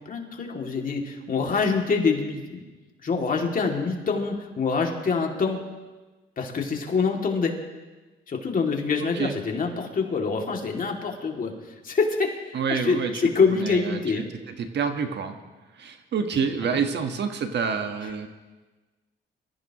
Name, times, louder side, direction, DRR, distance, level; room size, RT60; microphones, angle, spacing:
voice 1, 0.0-2.6 3.0-5.6 6.4-7.5 8.3-11.5 11.8-12.3 12.7-14.3 16.6-16.8, left 5 dB, 45° left, 1 dB, 2.5 m, -25 dB
voice 2, 12.5-13.2 13.5-14.0 14.5-15.4 15.8-18.3, right 6 dB, 60° right, 6 dB, 1.4 m, -27 dB
25.0 x 15.0 x 3.0 m, 1.2 s
cardioid pair, 90°, 20 cm